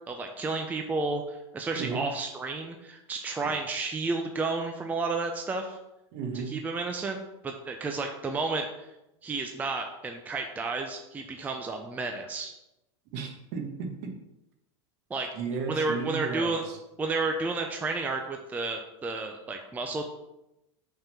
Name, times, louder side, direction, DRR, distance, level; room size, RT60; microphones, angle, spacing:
voice 1, 0.1-5.8 6.5-7.2 7.4-8.9 9.2-12.5 15.1-15.3 15.7-16.6 17.0-20.1, right 3 dB, 10° right, 3 dB, 0.5 m, -31 dB
voice 2, 6.1-6.5 13.1-14.1 15.3-16.8, right 5 dB, 50° right, 3 dB, 1.3 m, -34 dB
5.6 x 3.7 x 5.7 m, 0.92 s
supercardioid pair, 140°, 15 cm